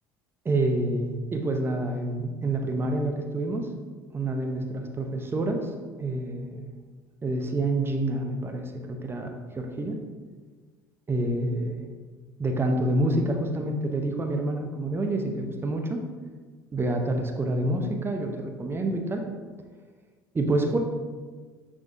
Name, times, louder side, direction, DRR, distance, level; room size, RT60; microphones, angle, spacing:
voice 1, 0.4-3.7 4.1-5.7 6.0-6.6 7.2-10.0 11.1-11.8 12.4-16.0 16.7-19.2 20.3-20.8, right 2 dB, 20° right, 3 dB, 0.8 m, -27 dB
9.7 x 3.5 x 2.7 m, 1.4 s
figure-of-eight pair, 60°, 11 cm